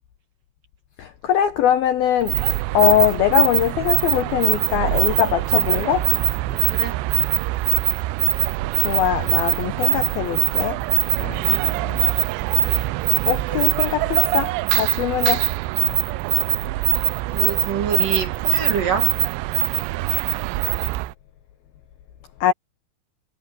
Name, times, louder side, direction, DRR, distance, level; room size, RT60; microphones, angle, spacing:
voice 1, 1.0-2.5 2.7-6.1 6.5-6.6 8.8-10.8 11.2-11.4 11.8-12.1 13.3-15.5 22.4-22.5, left 10 dB, 75° left, 2.3 m, -22 dB
sound 1, 2.2-21.1, right 21 dB, 90° right, 2.5 m, -22 dB
voice 2, 6.7-7.0 11.4-11.6 17.3-19.2, right 7 dB, 50° right, 3.7 m, -26 dB
omnidirectional pair, 5.6 m